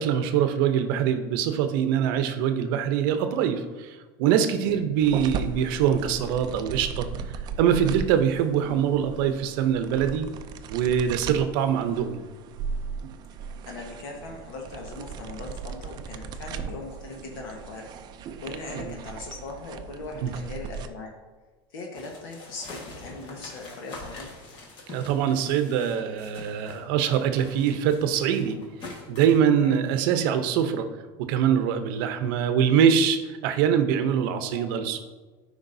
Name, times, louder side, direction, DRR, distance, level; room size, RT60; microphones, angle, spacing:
voice 1, 0.0-7.1 7.6-10.3 10.7-12.2 18.7-18.9 20.2-20.3 24.9-28.6 29.1-30.9 31.2-35.0, right 8 dB, 70° right, 9 dB, 0.7 m, -23 dB
sound 1, 5.0-20.9, right 6 dB, 35° right, 0.4 m, -37 dB
voice 2, 8.5-8.8 13.6-17.9 18.4-21.1 21.7-24.3 29.6-29.8 34.5-35.0, left 3 dB, 70° left, 1 dB, 1.3 m, -39 dB
sound 2, 21.9-26.8 27.1-29.4, left 3 dB, 40° left, 1.5 m, -44 dB
12.0 x 5.2 x 2.7 m, 1.3 s
supercardioid pair, 145°, 12 cm